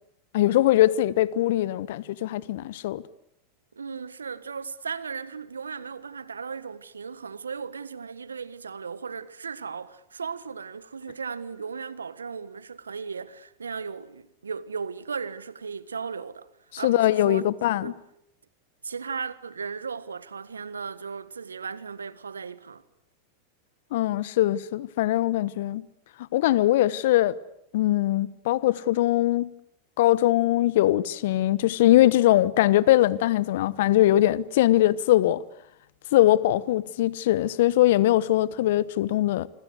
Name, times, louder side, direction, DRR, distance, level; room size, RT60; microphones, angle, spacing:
voice 1, 0.3-3.0 16.8-17.9 23.9-25.9 26.3-27.4 27.7-29.5 30.0-35.4 36.1-39.5, left 14 dB, 65° left, 1.1 m, -21 dB
voice 2, 3.7-16.5 16.8-17.4 17.7-18.0 18.8-22.8, right 5 dB, 85° right, 1.4 m, -36 dB
26.5 x 26.0 x 8.1 m
hypercardioid pair, 95°, 0 cm